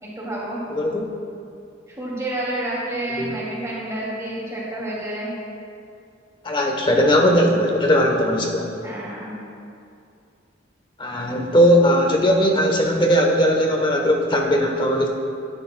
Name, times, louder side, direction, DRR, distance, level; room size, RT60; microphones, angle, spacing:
voice 1, 0.0-0.6 2.0-5.3 8.8-9.3, right 1 dB, 15° right, -6 dB, 2.5 m, -29 dB
voice 2, 0.7-1.1 3.2-3.3 6.4-8.7 11.0-15.1, equal, 25° left, 1 dB, 1.0 m, -18 dB
14.5 x 12.0 x 2.2 m, 2.5 s
head